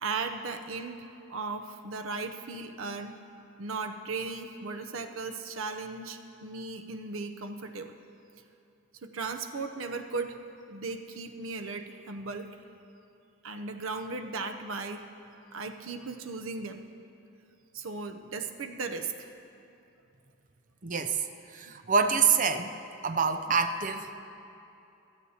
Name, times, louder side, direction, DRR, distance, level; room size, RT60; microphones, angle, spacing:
voice 1, 0.0-3.2 3.6-7.9 9.0-10.4 10.7-12.6 13.4-15.0 15.5-16.8 17.7-19.3, right 4 dB, 85° right, 7 dB, 0.7 m, -36 dB
voice 2, 20.8-21.2 21.5-22.8 23.0-24.1, right 5 dB, 40° right, 8 dB, 0.5 m, -26 dB
16.0 x 13.5 x 2.8 m, 2.8 s
head